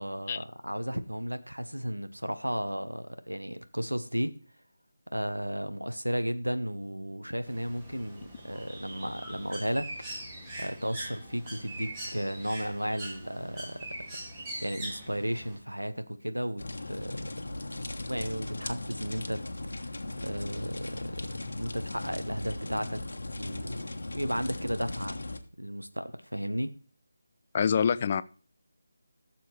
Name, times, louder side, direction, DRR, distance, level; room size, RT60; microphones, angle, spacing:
voice 1, 0.0-4.4 5.1-9.9 10.6-13.8 14.6-17.3 17.6-17.7 18.1-19.4 19.8-23.0 23.4-23.9 24.1-25.2 25.6-26.7, equal, 90° right, 10 dB, 1.0 m, -34 dB
Bird, 7.5-15.6, right 1 dB, 15° right, 2.3 m, -42 dB
sound 1, 16.6-25.4, left 2 dB, 65° left, 1.2 m, -38 dB
voice 2, 27.5-28.2, left 7 dB, 30° left, 17 dB, 0.4 m, -25 dB
15.0 x 6.9 x 3.3 m, 0.38 s
figure-of-eight pair, 155°, 0 cm